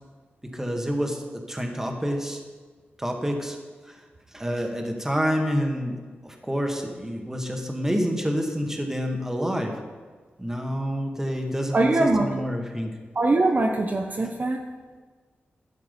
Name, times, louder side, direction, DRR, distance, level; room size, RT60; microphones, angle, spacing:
voice 1, 0.4-2.4 3.0-3.6 3.9-4.0 4.3-6.0 6.2-9.8 10.4-12.9, equal, 10° right, 2 dB, 1.8 m, -28 dB
voice 2, 11.7-12.3 13.1-14.6, right 2 dB, 45° right, 2 dB, 0.9 m, -22 dB
12.0 x 7.5 x 5.3 m, 1.4 s
cardioid pair, 60°, 4 cm